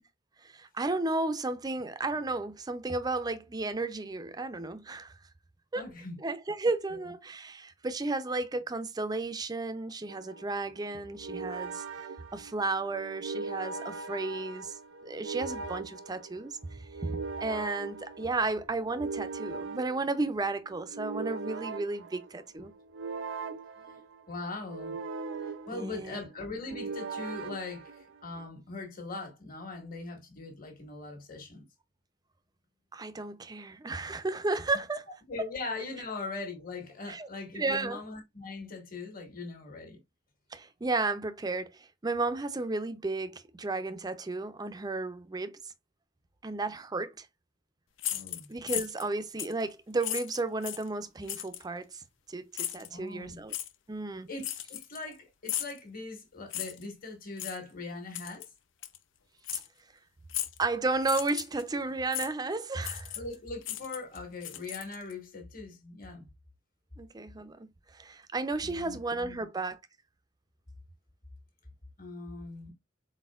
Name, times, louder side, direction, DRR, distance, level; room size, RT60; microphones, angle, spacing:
voice 1, 0.4-5.1 5.7-5.8 6.2-11.8 12.3-14.8 15.0-22.7 25.7-26.2 32.9-35.1 37.1-37.3 37.5-38.0 40.5-45.6 46.4-47.3 48.5-52.0 52.3-53.5 53.9-54.3 59.5-59.6 60.6-63.2 67.0-69.8, right 3 dB, 20° right, 0.4 m, -33 dB
voice 2, 5.7-6.2 23.8-24.0 24.3-25.0 25.7-31.6 35.3-40.0 48.1-48.5 52.9-53.4 54.3-58.5 63.1-66.3 68.6-69.0 69.2-69.4 72.0-72.7, left 3 dB, 45° left, 1.6 m, -41 dB
sound 1, 10.1-28.5, right 4 dB, 90° right, 0.6 m, -40 dB
sound 2, 48.0-49.1 49.4-49.6 50.0-50.9 51.3-51.6 52.5-52.9 53.5-53.7 54.4-55.1 55.5-55.8 56.5-56.9 57.4-57.6 58.1-58.5 58.8-59.0 59.4-59.7 60.3-60.6 61.0-61.6 62.1-62.3 62.8-63.3 63.6-65.1, left 12 dB, 80° left, 0.5 m, -36 dB
4.2 x 4.1 x 2.4 m
head